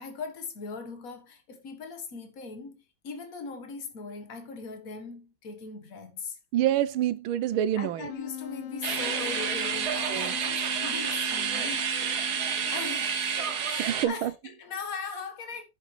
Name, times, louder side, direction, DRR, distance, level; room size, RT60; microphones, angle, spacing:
voice 1, 0.0-6.4 7.8-11.9 12.2-13.2 13.6-15.6, left 4 dB, 45° left, 1.8 m, -40 dB
voice 2, 6.5-8.0 10.1-10.3 13.8-14.3, right 11 dB, 85° right, 1.5 m, -27 dB
Wind instrument woodwind instrument, 8.1-13.8, left 12 dB, 90° left, 1.7 m, -41 dB
sound 1, 8.8-14.1, right 7 dB, 55° right, 1.5 m, -29 dB
9.9 x 7.3 x 3.2 m
omnidirectional pair, 2.3 m